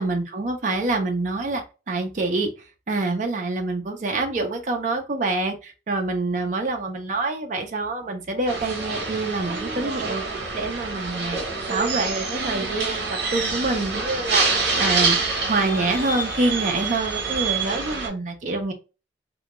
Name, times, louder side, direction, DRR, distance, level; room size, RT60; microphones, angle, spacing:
voice 1, 0.0-2.5 2.9-10.2 10.5-11.4 11.7-18.7, right 3 dB, 45° right, 3 dB, 0.4 m, -26 dB
sound 1, 8.5-18.1, right 4 dB, 70° right, 0.8 m, -26 dB
2.2 x 2.2 x 2.8 m, 0.31 s
head